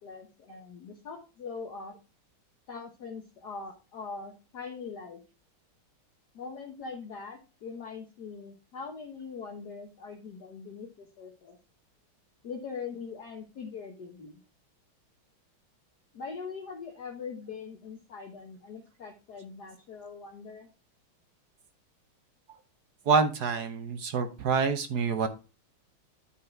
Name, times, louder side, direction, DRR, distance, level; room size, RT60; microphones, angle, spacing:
voice 1, 0.0-1.9 2.7-5.2 6.3-11.6 12.4-14.4 16.1-20.7, left 5 dB, 55° left, 1 dB, 1.5 m, -42 dB
voice 2, 23.1-25.3, right 5 dB, 60° right, 9 dB, 1.2 m, -27 dB
10.0 x 4.4 x 4.4 m, 0.31 s
omnidirectional pair, 2.3 m